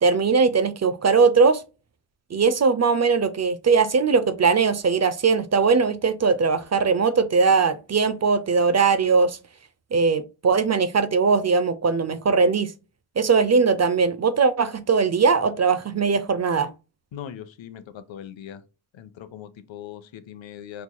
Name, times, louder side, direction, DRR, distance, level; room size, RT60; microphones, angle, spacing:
voice 1, 0.0-1.6 2.3-9.4 9.9-12.7 13.2-16.7, right 5 dB, 35° right, 0.5 m, -20 dB
voice 2, 17.1-18.6 18.9-20.8, left 9 dB, 70° left, 0.7 m, -40 dB
4.4 x 2.8 x 2.2 m
cardioid pair, 70°, 48 cm